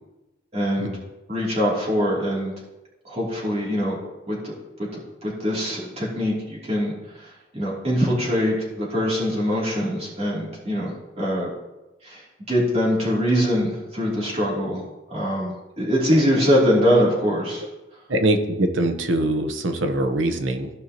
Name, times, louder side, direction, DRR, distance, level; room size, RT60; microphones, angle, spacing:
voice 1, 0.5-0.9 1.3-2.5 3.0-4.0 4.3-4.5 4.8-4.9 5.2-11.5 12.0-14.8 15.1-17.6, equal, 35° right, -6 dB, 3.1 m, -23 dB
voice 2, 18.1-20.7, right 1 dB, 85° right, 6 dB, 1.0 m, -23 dB
15.5 x 5.5 x 3.0 m, 1.1 s
head